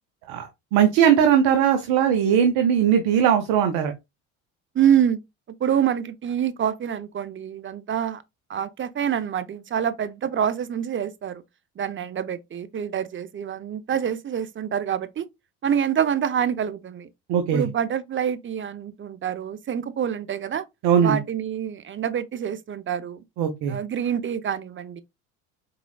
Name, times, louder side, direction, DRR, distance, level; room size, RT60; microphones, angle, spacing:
voice 1, 0.3-3.9 17.3-17.7 20.8-21.2 23.4-23.8, right 8 dB, 70° right, 0.9 m, -19 dB
voice 2, 4.7-5.2 5.6-8.2 8.5-11.4 11.8-15.2 15.6-17.1 17.5-20.6 21.0-23.2 23.7-25.0, right 9 dB, 30° right, 0.7 m, -26 dB
4.9 x 3.7 x 2.3 m
supercardioid pair, 80°, 39 cm